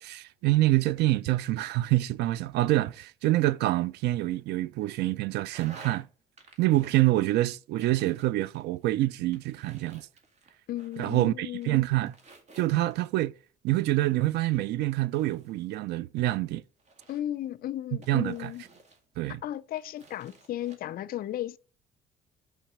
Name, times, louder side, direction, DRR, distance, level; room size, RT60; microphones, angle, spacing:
voice 1, 0.0-6.1 6.6-10.1 11.0-12.1 12.6-13.3 13.6-16.6 18.1-18.5 19.2-19.4, right 16 dB, 80° right, 0.5 m, -26 dB
sound 1, 5.5-6.0 6.4-7.4 7.8-8.9 9.3-11.3 11.6-13.1 13.7-15.6 16.1-17.4 18.0-19.3 19.8-20.8, right 3 dB, 40° right, 2.0 m, -53 dB
voice 2, 10.7-11.8 17.1-18.6 19.3-21.6, left 13 dB, 60° left, 0.6 m, -35 dB
5.9 x 5.5 x 6.7 m
cardioid pair, 110°, 17 cm